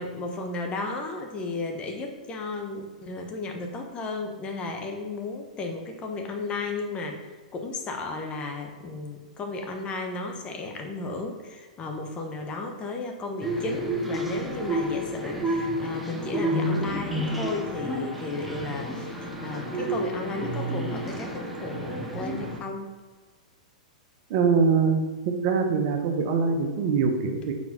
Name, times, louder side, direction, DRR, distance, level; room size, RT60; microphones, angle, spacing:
voice 1, 0.0-7.2 7.5-22.9, left 3 dB, 25° left, 3 dB, 1.0 m, -34 dB
sound 1, 13.4-22.6, right 1 dB, 5° right, 1.0 m, -30 dB
voice 2, 24.3-25.0 25.2-27.5, right 5 dB, 50° right, 4 dB, 0.9 m, -23 dB
4.8 x 4.1 x 5.2 m, 1.3 s
hypercardioid pair, 110°, 4 cm